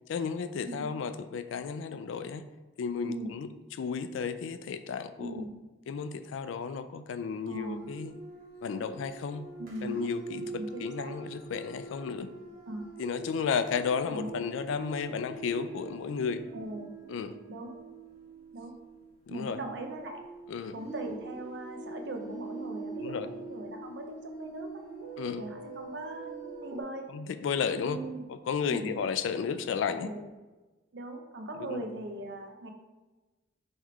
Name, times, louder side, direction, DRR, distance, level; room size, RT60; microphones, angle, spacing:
voice 1, 0.1-2.5 2.8-3.5 3.8-5.4 5.9-8.1 8.6-9.5 9.8-10.4 10.8-12.3 13.0-16.4 17.1-17.4 19.3-19.6 20.5-20.7 23.0-23.3 25.2-25.5 27.1-28.0 28.3-30.1 31.6-31.8, left 6 dB, 85° left, 12 dB, 0.3 m, -33 dB
voice 2, 5.2-5.5 7.5-7.8 9.6-9.9 10.6-11.2 12.7-12.9 14.1-14.5 16.5-16.9 17.5-17.7 18.5-18.7 19.3-20.2 20.7-24.8 25.4-27.1 27.8-28.2 28.7-28.9 29.8-30.2 30.9-32.7, right 2 dB, 65° right, 4 dB, 0.6 m, -40 dB
sound 1, 7.5-26.8, right 3 dB, 50° right, 1.1 m, -44 dB
3.7 x 3.1 x 4.6 m, 1.2 s
head